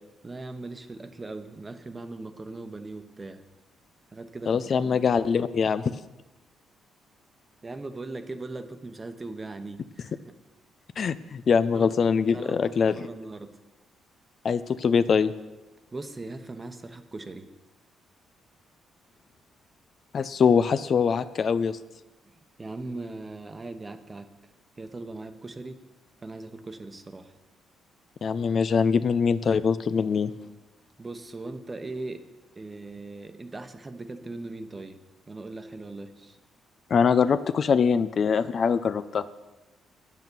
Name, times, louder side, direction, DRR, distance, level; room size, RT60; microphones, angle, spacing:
voice 1, 0.2-3.4 4.1-5.0 7.6-10.2 11.7-13.6 15.9-17.5 22.6-24.3 24.8-25.8 26.2-27.3 31.0-32.2 32.5-35.0 35.3-36.4, right 2 dB, 25° right, 9 dB, 1.0 m, -39 dB
voice 2, 4.5-5.8 11.0-12.9 14.4-15.3 20.1-21.8 28.2-30.3 36.9-39.3, left 6 dB, 50° left, 13 dB, 0.4 m, -23 dB
9.2 x 8.3 x 6.8 m, 1.1 s
cardioid pair, 90°, 0 cm